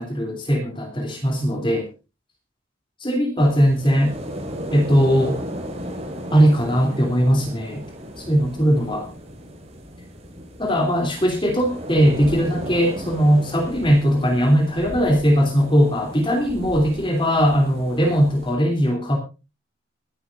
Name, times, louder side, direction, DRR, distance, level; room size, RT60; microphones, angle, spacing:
voice 1, 0.0-1.9 3.0-4.1 4.7-5.4 6.3-7.8 8.2-9.1 10.6-19.2, equal, 25° left, 3 dB, 2.9 m, -19 dB
sound 1, 3.4-18.5, equal, 30° right, 4.8 m, -35 dB
23.5 x 11.0 x 2.5 m, 0.29 s
head